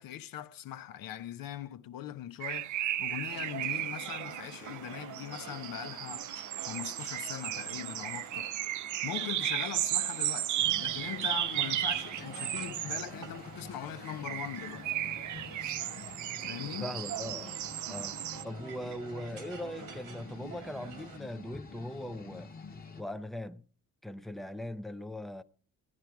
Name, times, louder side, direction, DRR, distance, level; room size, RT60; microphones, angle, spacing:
voice 1, 0.0-6.3 6.6-8.5 9.0-14.9 16.4-16.9, left 11 dB, 80° left, 0.9 m, -41 dB
sound 1, 2.4-13.1 14.0-18.4, right 13 dB, 60° right, 0.5 m, -35 dB
sound 2, 3.3-21.2, right 7 dB, 80° right, 2.3 m, -48 dB
sound 3, 10.6-23.0, left 4 dB, 25° left, 1.2 m, -48 dB
voice 2, 16.8-17.6 17.9-22.5 23.0-23.6 24.0-25.4, left 1 dB, ahead, 0.6 m, -40 dB
16.5 x 10.5 x 4.7 m
cardioid pair, 125°, 34 cm